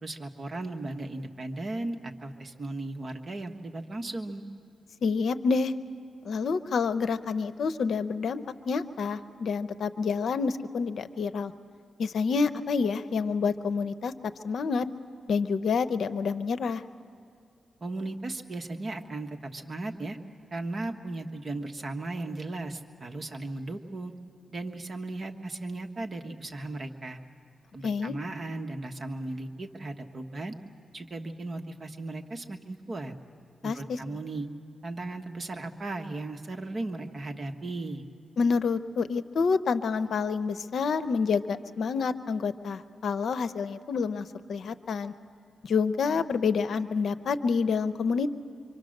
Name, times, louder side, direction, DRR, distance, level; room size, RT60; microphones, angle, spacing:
voice 1, 0.0-4.4 17.8-20.2 20.5-24.1 24.5-27.2 27.7-30.6 30.9-33.1 33.6-34.5 34.8-38.0, right 2 dB, 45° right, 5 dB, 1.4 m, -36 dB
voice 2, 5.0-5.7 6.2-11.5 12.0-14.1 14.4-14.9 15.3-16.8 27.8-28.2 33.6-34.0 38.4-45.1 45.6-48.3, left 5 dB, 75° left, 12 dB, 0.7 m, -28 dB
25.5 x 25.0 x 6.6 m, 2.3 s
cardioid pair, 80°, 0 cm